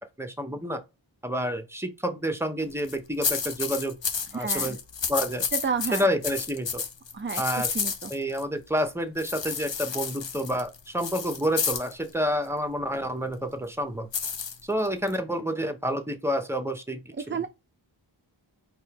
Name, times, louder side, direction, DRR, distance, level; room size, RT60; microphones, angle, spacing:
voice 1, 0.2-0.8 1.2-4.0 4.3-4.8 5.1-5.4 5.9-6.8 7.4-7.7 8.1-14.1 14.6-17.0 17.3-17.4, equal, 5° right, 0.9 m, -29 dB
sound 1, 2.7-3.0 3.2-8.4 9.2-11.9 14.1-15.2, left 6 dB, 70° left, 0.7 m, -31 dB
voice 2, 4.3-4.8 5.5-6.1 7.1-8.1 17.2-17.5, right 5 dB, 25° right, 0.4 m, -31 dB
4.4 x 2.9 x 3.5 m
wide cardioid pair, 40°, 46 cm